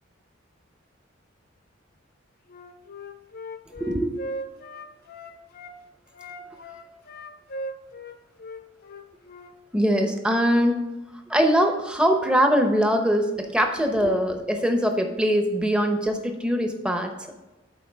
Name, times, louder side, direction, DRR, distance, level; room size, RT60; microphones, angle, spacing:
Wind instrument woodwind instrument, 2.5-5.8 6.1-9.5, equal, 45° left, 0.7 m, -38 dB
voice 1, 3.8-4.1 9.7-10.8 11.3-17.1, equal, 5° right, 4 dB, 0.8 m, -22 dB
11.5 x 4.6 x 3.5 m, 1.1 s
head